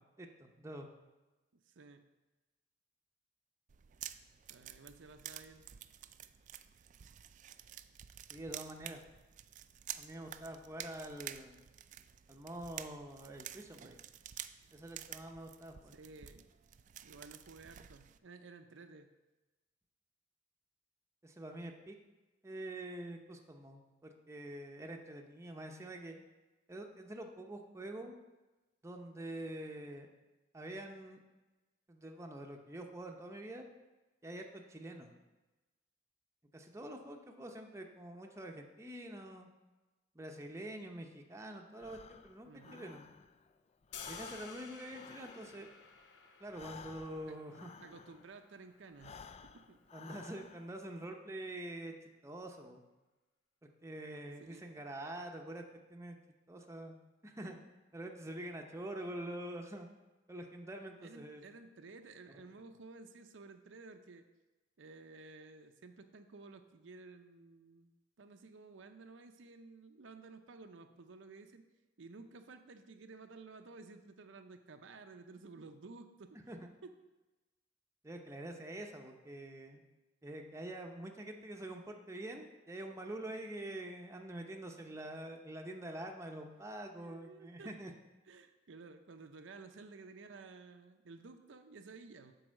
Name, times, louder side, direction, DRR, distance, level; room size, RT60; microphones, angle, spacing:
voice 1, 0.2-0.9 8.3-9.0 10.0-11.6 12.3-14.0 14.7-15.9 21.2-22.0 22.4-26.2 26.7-28.2 28.8-30.1 30.5-31.2 31.9-33.7 34.2-35.1 36.5-39.5 40.1-43.0 44.1-45.7 46.4-47.7 49.9-51.9 52.2-52.8 53.6-55.6 55.9-56.2 56.5-57.0 57.2-57.6 57.9-59.9 60.3-61.4 62.3-62.4 76.5-76.7 78.0-79.8 80.2-87.9, right 1 dB, 15° right, 3 dB, 0.7 m, -46 dB
voice 2, 1.5-2.0 4.5-5.7 15.9-16.5 17.0-19.1 42.1-42.9 47.3-47.4 47.8-49.8 54.4-54.7 61.0-64.2 64.8-67.9 68.2-71.6 72.0-76.4 76.8-76.9 87.0-87.7 88.3-92.3, right 3 dB, 80° right, 7 dB, 0.6 m, -54 dB
sound 1, 3.7-18.2, right 11 dB, 40° right, 0.3 m, -50 dB
Breathing, 41.8-43.5 43.8-48.4 48.9-50.8, left 6 dB, 35° left, 0.3 m, -54 dB
sound 2, 43.9-50.0, left 6 dB, 70° left, 0.7 m, -54 dB
7.8 x 4.7 x 6.3 m, 1.1 s
head